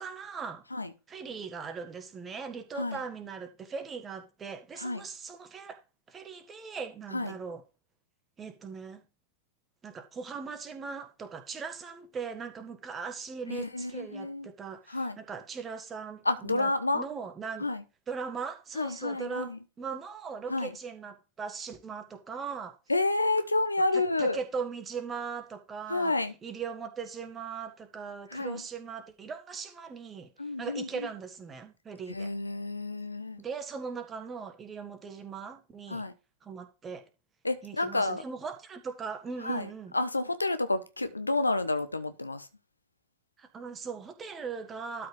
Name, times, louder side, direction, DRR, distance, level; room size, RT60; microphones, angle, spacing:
voice 1, 0.0-0.6 1.1-5.8 6.1-7.6 8.4-9.0 9.8-17.7 18.1-22.8 23.9-26.1 26.4-30.3 30.6-32.3 33.4-36.0 36.4-37.1 37.6-40.0 43.4-45.1, right 5 dB, 20° right, 1.6 m, -39 dB
voice 2, 13.5-14.5 14.9-15.2 16.2-17.0 17.6-17.8 18.7-19.6 20.5-20.8 22.9-24.4 25.9-26.3 28.3-28.6 30.4-31.1 32.1-33.4 35.9-36.1 37.4-38.2 39.4-42.5, left 2 dB, 80° left, 0.9 m, -30 dB
12.5 x 5.9 x 3.3 m
figure-of-eight pair, 90°, 0 cm